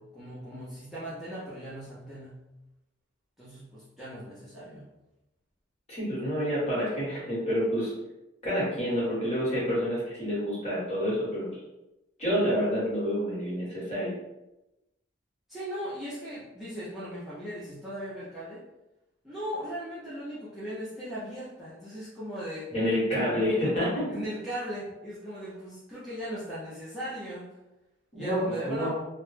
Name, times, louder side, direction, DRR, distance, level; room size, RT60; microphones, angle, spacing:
voice 1, 0.0-2.4 3.4-4.9 15.5-18.6 19.2-22.7 24.1-27.5 28.2-28.9, equal, ahead, -12 dB, 0.5 m, -38 dB
voice 2, 5.9-7.9 8.4-11.5 12.2-14.1 22.7-24.1 28.2-28.9, equal, 35° left, -8 dB, 1.1 m, -28 dB
2.1 x 2.0 x 3.1 m, 0.97 s
head